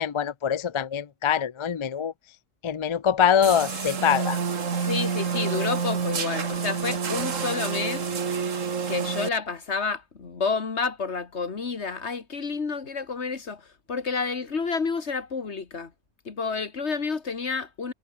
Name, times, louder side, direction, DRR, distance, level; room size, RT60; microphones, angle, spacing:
voice 1, 0.0-2.1 2.6-4.4, left 8 dB, 45° left, 0.4 m, -24 dB
sound 1, 3.4-9.3, right 6 dB, 85° right, 2.0 m, -28 dB
voice 2, 4.7-8.1 8.9-15.9 16.3-17.9, left 4 dB, 60° left, 2.1 m, -30 dB
omnidirectional pair, 1.3 m